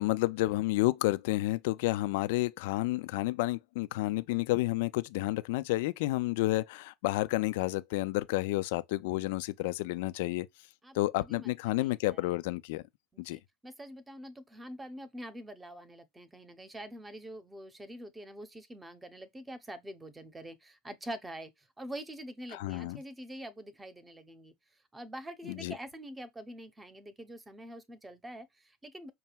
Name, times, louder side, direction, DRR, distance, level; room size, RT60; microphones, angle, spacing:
voice 1, 0.0-10.5 10.9-12.8 13.2-13.4 22.5-23.0 25.4-25.7, left 19 dB, 60° left, 0.4 m, -30 dB
voice 2, 10.8-12.2 13.1-24.5 24.9-29.1, right 1 dB, 15° right, 0.9 m, -45 dB
5.9 x 2.2 x 3.3 m
figure-of-eight pair, 75°, 0 cm